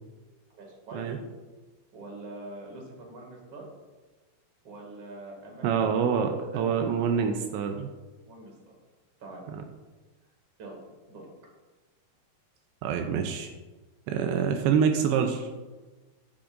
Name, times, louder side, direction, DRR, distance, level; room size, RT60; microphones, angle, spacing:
voice 1, 0.5-1.2 1.9-3.7 4.6-5.9 6.3-6.6 7.0-7.2 8.2-8.8 9.2-9.4 10.6-11.3, right 2 dB, 35° right, -1 dB, 2.3 m, -44 dB
voice 2, 5.6-7.9 9.5-9.6 12.8-13.5 14.1-15.5, right 7 dB, 80° right, 5 dB, 2.9 m, -26 dB
14.0 x 8.6 x 2.6 m, 1.2 s
omnidirectional pair, 5.2 m